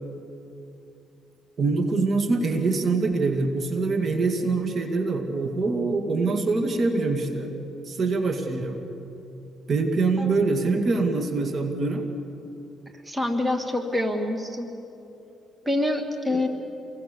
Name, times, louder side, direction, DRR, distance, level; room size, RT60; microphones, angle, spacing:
voice 1, 1.6-7.5 7.9-8.8 9.7-12.1 16.3-16.4, right 3 dB, 50° right, 5 dB, 2.4 m, -24 dB
voice 2, 13.1-14.7 15.7-16.5, left 1 dB, 15° right, 5 dB, 2.2 m, -26 dB
28.0 x 23.0 x 7.1 m, 2.9 s
cardioid pair, 80°, 0 cm